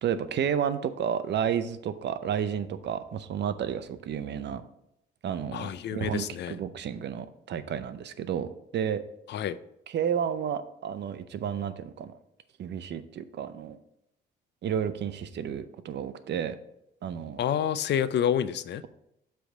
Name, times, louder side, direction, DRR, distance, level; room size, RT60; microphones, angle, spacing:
voice 1, 0.0-4.6 5.2-9.0 9.9-12.2 12.6-13.8 14.6-16.6 17.0-17.4, right 8 dB, 60° right, 12 dB, 0.6 m, -31 dB
voice 2, 5.5-6.6 9.3-9.6 17.4-18.8, left 9 dB, 60° left, 14 dB, 0.5 m, -28 dB
7.6 x 3.5 x 6.5 m, 0.80 s
cardioid pair, 90°, 20 cm